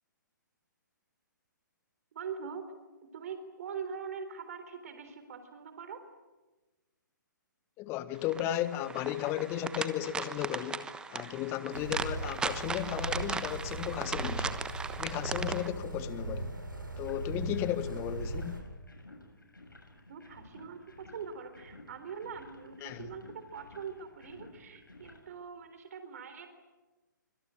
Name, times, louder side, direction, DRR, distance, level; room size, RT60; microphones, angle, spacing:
voice 1, 2.1-2.7 3.1-6.0 20.1-26.5, right 6 dB, 50° right, 3.6 m, -43 dB
voice 2, 7.8-10.8 11.1-14.6 15.0-16.5 17.0-18.6 22.8-23.1, left 12 dB, 25° left, 1.4 m, -35 dB
sound 1, 8.3-15.7, right 5 dB, 10° right, 1.2 m, -38 dB
sound 2, 11.7-18.6, right 2 dB, 80° right, 8.0 m, -38 dB
sound 3, 17.0-25.2, left 2 dB, 80° left, 7.7 m, -54 dB
25.5 x 25.0 x 9.1 m
figure-of-eight pair, 125°, 11 cm